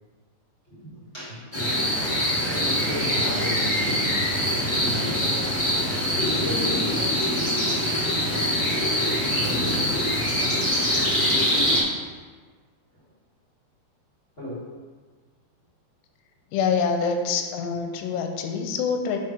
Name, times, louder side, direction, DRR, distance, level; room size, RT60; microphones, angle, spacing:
voice 1, 0.7-1.5 2.7-4.2 4.8-5.5 6.3-7.5 8.9-10.3 14.4-14.7, equal, 35° left, -10 dB, 1.1 m, -35 dB
sound 1, 1.5-11.8, equal, 15° left, 0.9 m, -24 dB
voice 2, 16.5-19.2, left 5 dB, 90° left, 5 dB, 2.8 m, -25 dB
5.8 x 5.0 x 6.0 m, 1.4 s
omnidirectional pair, 4.8 m